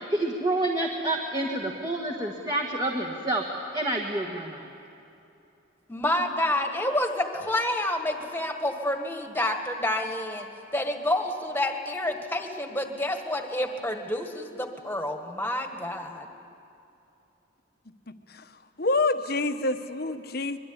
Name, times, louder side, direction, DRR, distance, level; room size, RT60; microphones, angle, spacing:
voice 1, 0.0-4.7, right 1 dB, 20° right, 1 dB, 1.5 m, -28 dB
voice 2, 5.9-10.5 10.7-16.2, left 1 dB, 10° left, 4 dB, 1.7 m, -28 dB
voice 3, 18.1-18.5 18.8-20.6, left 3 dB, 50° left, 8 dB, 1.1 m, -27 dB
24.5 x 22.0 x 9.7 m, 2.8 s
head